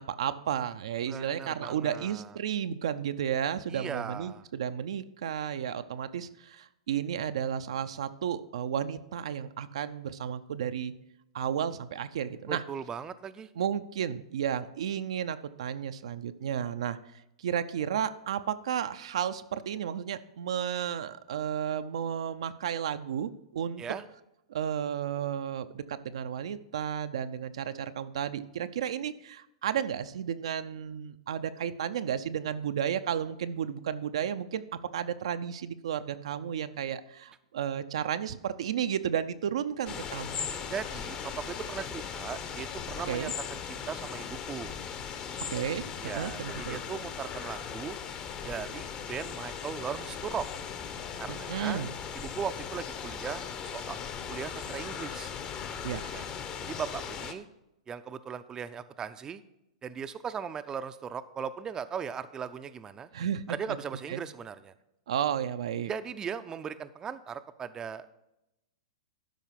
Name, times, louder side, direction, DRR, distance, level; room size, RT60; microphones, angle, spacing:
voice 1, 0.0-10.9 11.3-12.6 13.6-17.0 17.4-23.8 24.5-34.6 34.9-40.4 43.1-43.3 45.5-46.8 51.3-51.9 55.8-56.1 63.1-63.8 64.1-64.2 65.1-65.9, right 9 dB, 70° right, 10 dB, 0.6 m, -33 dB
voice 2, 1.1-2.4 3.7-4.4 12.5-13.5 23.8-24.0 40.7-44.7 46.0-48.0 48.4-50.5 51.2-51.8 52.2-54.0 54.3-55.3 56.1-56.3 56.6-57.5 57.9-59.4 59.8-63.1 63.5-64.7 65.9-68.2, right 7 dB, 20° right, 11 dB, 0.5 m, -38 dB
sound 1, 39.9-57.3, left 7 dB, 30° left, 0.9 m, -38 dB
12.5 x 4.9 x 5.8 m, 0.87 s
hypercardioid pair, 115°, 3 cm